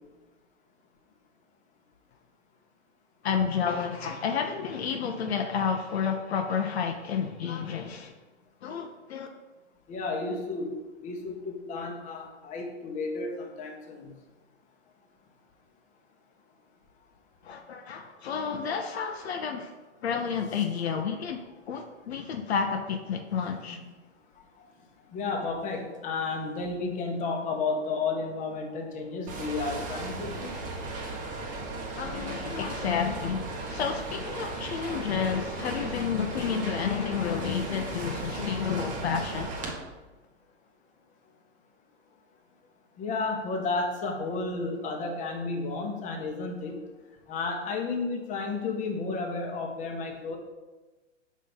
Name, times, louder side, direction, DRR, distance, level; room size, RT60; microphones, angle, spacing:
voice 1, 3.2-8.1 8.6-9.3 17.4-19.7 20.0-23.8 32.0-39.6, left 6 dB, 60° left, 5 dB, 0.7 m, -30 dB
voice 2, 9.9-10.8 11.0-14.1 23.7-23.8 25.1-30.5 43.0-46.8 47.3-50.4, left 3 dB, 20° left, 2 dB, 1.0 m, -32 dB
sound 1, 29.3-39.7, right 3 dB, 20° right, 1.0 m, -36 dB
5.5 x 3.7 x 5.4 m, 1.2 s
hypercardioid pair, 120°, 36 cm